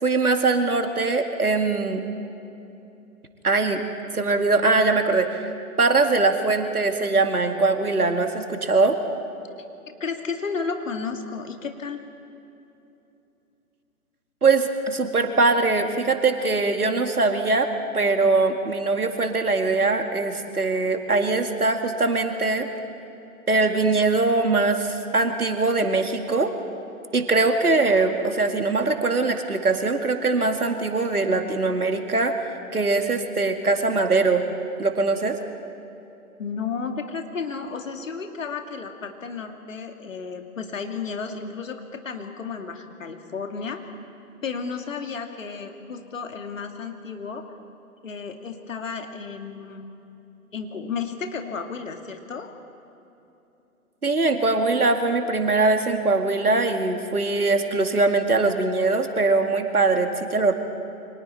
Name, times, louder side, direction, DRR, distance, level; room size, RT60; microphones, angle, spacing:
voice 1, 0.0-2.1 3.4-3.8 4.1-5.4 5.8-9.0 14.4-17.7 17.9-22.7 23.5-26.5 27.1-32.3 32.7-34.4 34.8-35.4 54.0-60.5, right 3 dB, 80° right, 6 dB, 2.3 m, -22 dB
voice 2, 10.0-12.0 36.4-43.8 44.4-47.4 48.0-49.9 50.5-52.5, left 5 dB, 60° left, 5 dB, 2.4 m, -33 dB
29.5 x 25.0 x 4.4 m, 2.9 s
figure-of-eight pair, 130°, 44 cm